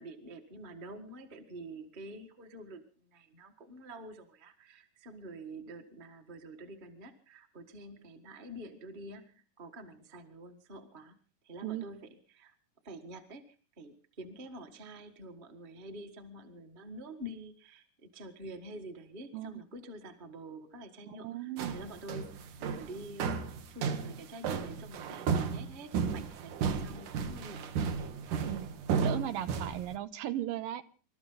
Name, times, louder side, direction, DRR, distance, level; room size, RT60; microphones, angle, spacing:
voice 1, 0.0-11.2 11.4-12.5 12.8-28.0, right 1 dB, 30° right, 6 dB, 0.9 m, -47 dB
voice 2, 19.3-19.6 21.1-21.8 28.4-28.7 29.0-30.8, right 12 dB, 85° right, 11 dB, 2.7 m, -37 dB
sound 1, 21.6-30.0, right 6 dB, 65° right, 2.6 m, -34 dB
27.0 x 13.5 x 3.9 m, 0.38 s
omnidirectional pair, 4.0 m